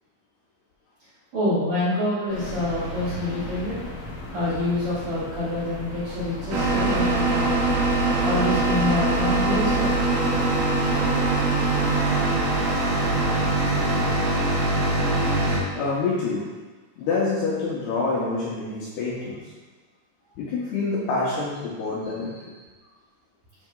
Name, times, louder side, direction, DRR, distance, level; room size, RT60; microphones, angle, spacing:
voice 1, 1.3-3.8 4.3-7.6 8.2-9.9, left 1 dB, 55° right, -15 dB, 3.1 m, -26 dB
sound 1, 2.3-14.2, left 1 dB, 65° left, 3.8 m, -37 dB
sound 2, 6.5-15.6, right 2 dB, 80° right, 2.2 m, -22 dB
voice 2, 15.8-16.5 17.0-19.5 20.4-22.5, left 3 dB, 90° left, -6 dB, 2.2 m, -27 dB
10.0 x 4.8 x 2.3 m, 1.3 s
omnidirectional pair, 5.7 m